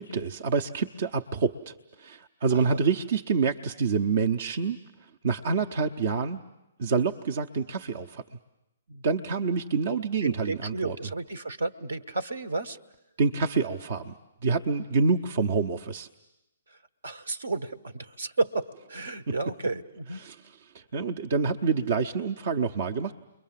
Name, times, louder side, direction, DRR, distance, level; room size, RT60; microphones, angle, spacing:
voice 1, 0.0-4.8 5.2-6.4 6.8-8.2 8.9-11.0 13.2-14.1 14.4-16.1 19.3-19.4 20.2-20.4 20.7-23.1, right 5 dB, 55° right, 5 dB, 0.9 m, -27 dB
voice 2, 2.5-2.8 10.2-12.8 16.7-20.2, right 3 dB, 75° right, 14 dB, 1.3 m, -32 dB
29.5 x 22.5 x 7.6 m, 0.91 s
figure-of-eight pair, 130°, 0 cm